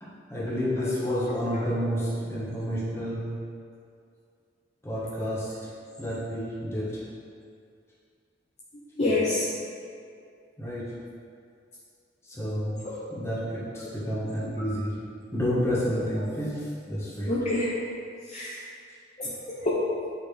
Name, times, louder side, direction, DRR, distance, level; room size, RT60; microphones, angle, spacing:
voice 1, 0.0-3.3 4.8-5.7 6.0-7.0 10.6-10.9 12.2-12.8 13.1-15.1 15.3-17.3, equal, 15° left, -8 dB, 1.5 m, -30 dB
voice 2, 9.0-9.5 12.8-12.9 13.8-13.9 14.6-14.7 17.3-17.7 18.3-18.6 19.2-19.7, left 2 dB, 35° left, -7 dB, 0.8 m, -27 dB
8.3 x 4.9 x 3.5 m, 2.4 s
head